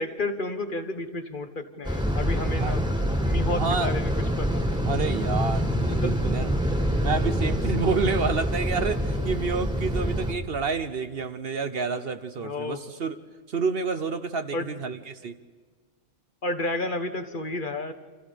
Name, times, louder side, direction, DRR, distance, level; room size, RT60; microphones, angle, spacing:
voice 1, 0.0-2.8 3.2-4.1 4.4-4.7 5.9-6.2 12.4-12.9 14.5-14.7 16.4-17.9, left 2 dB, 40° left, 8 dB, 1.4 m, -31 dB
sound 1, 1.8-10.3, equal, 5° right, 2.0 m, -26 dB
voice 2, 3.5-3.9 4.8-6.6 7.0-13.2 13.5-15.4, right 5 dB, 55° right, 11 dB, 1.0 m, -29 dB
30.0 x 26.5 x 5.2 m, 1.5 s
omnidirectional pair, 1.3 m